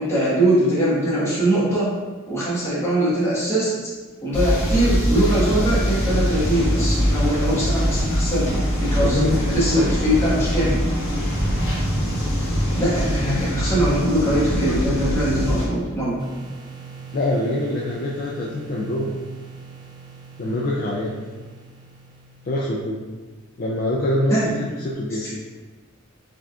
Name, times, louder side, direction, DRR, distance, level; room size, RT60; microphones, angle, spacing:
voice 1, 0.0-1.9 2.3-3.9 4.2-10.8 12.8-16.2 24.3-24.6 25.2-25.3, right 1 dB, 15° left, -10 dB, 1.4 m, -22 dB
sound 1, 4.3-15.7, equal, 70° left, 1.4 m, -22 dB
voice 2, 9.0-9.4 9.7-9.9 17.1-19.1 20.4-21.1 22.5-23.0 23.6-25.3, left 1 dB, 45° left, -4 dB, 0.4 m, -24 dB
sound 2, 16.2-23.0, right 3 dB, 20° right, 0.5 m, -40 dB
4.9 x 3.5 x 2.4 m, 1.3 s
head